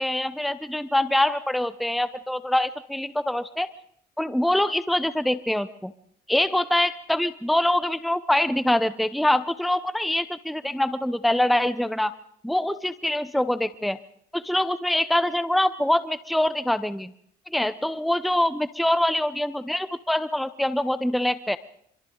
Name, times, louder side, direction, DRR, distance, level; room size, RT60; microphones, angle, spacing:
voice 1, 0.0-3.7 4.2-5.9 6.3-12.1 12.4-14.0 14.3-17.1 17.5-21.6, left 1 dB, ahead, 12 dB, 0.8 m, -24 dB
26.5 x 25.5 x 3.9 m, 0.67 s
cardioid pair, 110°, 17 cm